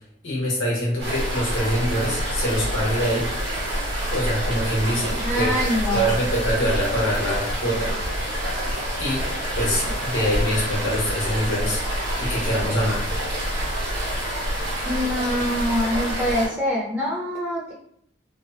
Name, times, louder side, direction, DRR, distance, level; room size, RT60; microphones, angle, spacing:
voice 1, 0.2-3.3 4.1-5.5 5.9-8.2 9.0-9.2 9.5-11.8 12.2-13.0, equal, 80° left, -5 dB, 1.2 m, -24 dB
sound 1, 1.0-16.5, equal, 75° right, 1.2 m, -27 dB
voice 2, 5.2-6.2 14.8-17.7, left 1 dB, 10° right, -7 dB, 0.5 m, -24 dB
3.0 x 2.0 x 2.7 m, 0.66 s
head